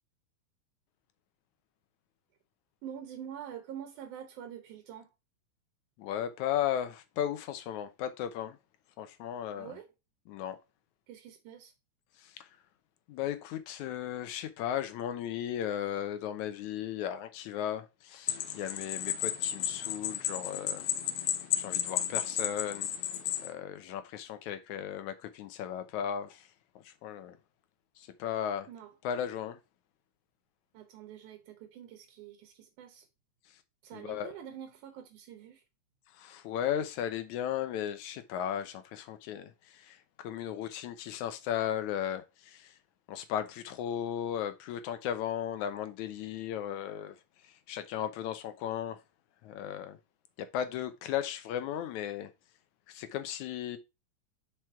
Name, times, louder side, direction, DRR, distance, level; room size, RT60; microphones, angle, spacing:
voice 1, 2.8-5.1 9.6-9.9 11.1-11.7 28.7-28.9 30.7-33.1 33.8-35.6, right 9 dB, 75° right, 2.4 m, -46 dB
voice 2, 6.0-8.6 9.0-9.8 10.3-10.6 12.2-12.5 13.1-20.9 21.6-22.9 23.4-26.5 26.8-27.4 28.0-28.7 29.0-29.6 33.9-34.3 36.1-42.7 43.1-47.2 47.4-49.0 49.4-50.0 50.4-52.3 52.9-53.8, left 10 dB, 75° left, 2.0 m, -36 dB
sound 1, 18.3-23.5, left 11 dB, 90° left, 1.2 m, -33 dB
6.1 x 4.9 x 4.4 m
omnidirectional pair, 3.7 m